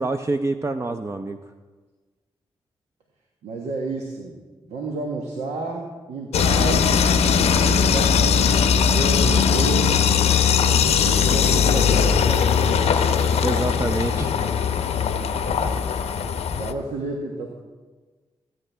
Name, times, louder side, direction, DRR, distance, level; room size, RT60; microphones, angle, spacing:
voice 1, 0.0-1.4 13.4-14.3, right 2 dB, 25° right, 7 dB, 0.6 m, -26 dB
voice 2, 3.4-4.4 4.7-6.9 7.2-10.1 10.6-13.6 14.9-15.4 16.5-17.5, right 2 dB, 80° right, 0 dB, 1.3 m, -31 dB
sound 1, 6.3-16.7, left 6 dB, 75° left, 0.7 m, -19 dB
15.5 x 9.3 x 3.4 m, 1.4 s
supercardioid pair, 45°, 11 cm